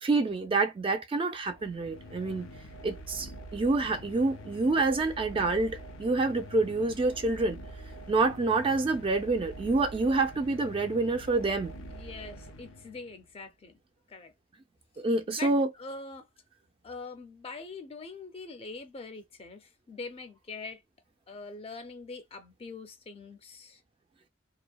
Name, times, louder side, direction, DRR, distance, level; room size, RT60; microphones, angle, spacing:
voice 1, 0.0-2.5 2.8-7.6 8.1-11.7 15.0-15.7, right 3 dB, 25° right, 0.3 m, -27 dB
sound 1, 1.4-13.3, equal, 90° left, 0.5 m, -45 dB
voice 2, 11.9-13.8 14.1-14.3 15.3-16.3 16.8-20.8 21.3-23.8, left 3 dB, 30° left, 0.5 m, -43 dB
2.7 x 2.1 x 2.2 m
head